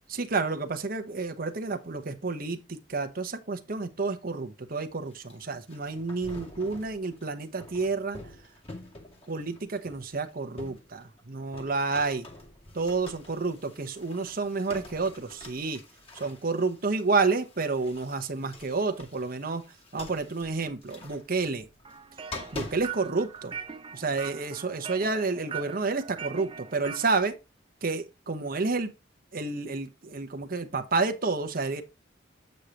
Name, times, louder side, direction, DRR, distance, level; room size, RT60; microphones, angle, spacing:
voice 1, 0.1-8.2 9.3-12.3 12.7-15.8 16.2-19.6 19.9-21.7 22.5-23.5 23.9-27.4 27.8-28.9 29.3-31.8, right 3 dB, 50° right, 1.0 m, -30 dB
sound 1, 5.1-11.2 11.5-23.7, left 2 dB, 30° left, 2.1 m, -46 dB
sound 2, 21.8-27.2, right 7 dB, 30° right, 0.7 m, -41 dB
8.2 x 6.5 x 2.9 m
head